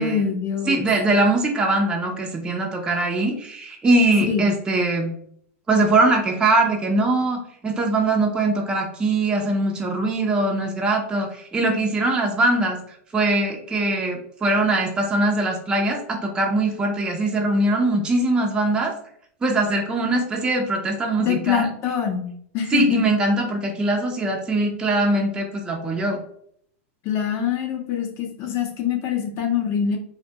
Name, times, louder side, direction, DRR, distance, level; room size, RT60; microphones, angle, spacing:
voice 1, 0.0-0.9 4.3-4.5 21.2-22.3 22.5-23.0 27.0-30.0, left 8 dB, 40° left, 3 dB, 0.6 m, -24 dB
voice 2, 0.7-5.1 5.7-18.9 19.4-21.7 22.7-26.2, right 2 dB, 10° right, 1 dB, 0.4 m, -22 dB
2.6 x 2.1 x 2.8 m, 0.65 s
supercardioid pair, 135°, 7 cm